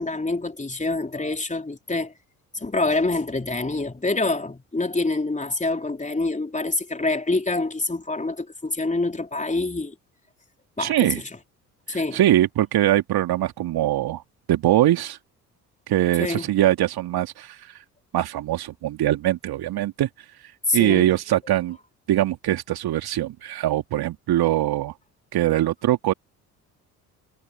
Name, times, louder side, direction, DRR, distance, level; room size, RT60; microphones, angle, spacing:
voice 1, 0.0-2.1 2.5-9.9 10.8-11.3 11.9-12.2 16.2-16.5 20.7-21.1, left 2 dB, 15° left, 3.5 m, -26 dB
voice 2, 10.8-11.2 12.1-14.2 14.5-15.2 15.9-17.6 18.1-20.1 20.7-21.8 22.1-24.9 25.3-26.1, right 13 dB, 55° right, 3.0 m, -22 dB
figure-of-eight pair, 50°, 45 cm